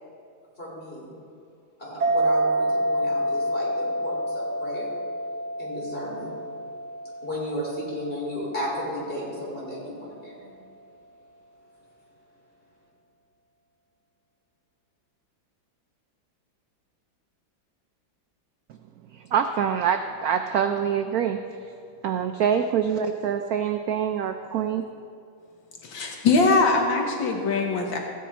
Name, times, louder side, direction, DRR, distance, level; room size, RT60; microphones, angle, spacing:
voice 1, 0.6-1.1 1.8-5.0 5.6-6.3 7.2-10.5, equal, 25° left, -5 dB, 3.8 m, -34 dB
sound 1, 2.0-9.1, right 1 dB, 50° right, 1.0 m, -28 dB
voice 2, 19.1-21.4 22.0-24.9, right 8 dB, 80° right, 7 dB, 0.8 m, -25 dB
voice 3, 25.8-28.0, left 3 dB, 75° left, 2 dB, 1.7 m, -22 dB
15.0 x 9.2 x 4.3 m, 2.6 s
omnidirectional pair, 2.1 m